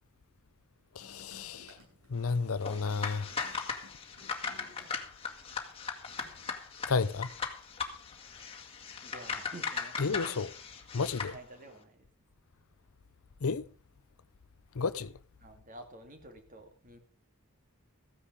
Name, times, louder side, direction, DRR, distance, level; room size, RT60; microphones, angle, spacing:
voice 1, 0.9-1.8 2.1-3.4 6.9-7.3 10.0-10.5 10.9-11.3 13.4-13.6 14.7-15.1, left 4 dB, 70° left, 0.6 m, -32 dB
sound 1, 1.0-5.3 5.6-6.5, left 1 dB, 85° right, 7.8 m, -58 dB
sound 2, 2.6-11.4, left 5 dB, 25° left, 1.9 m, -38 dB
voice 2, 9.0-10.4 11.3-12.1 15.4-17.0, right 1 dB, 35° right, 2.5 m, -50 dB
15.0 x 10.0 x 5.1 m
head